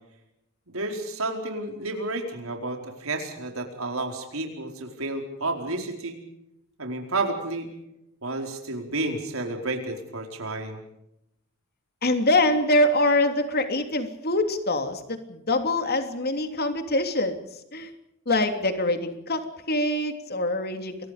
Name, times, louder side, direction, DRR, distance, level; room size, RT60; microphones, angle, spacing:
voice 1, 0.7-6.2 6.8-7.7 8.2-10.8, right 2 dB, 75° right, 3 dB, 4.7 m, -31 dB
voice 2, 12.0-17.4 17.7-17.9 18.2-21.1, left 1 dB, 50° left, 7 dB, 3.2 m, -24 dB
29.5 x 23.5 x 5.2 m, 0.83 s
head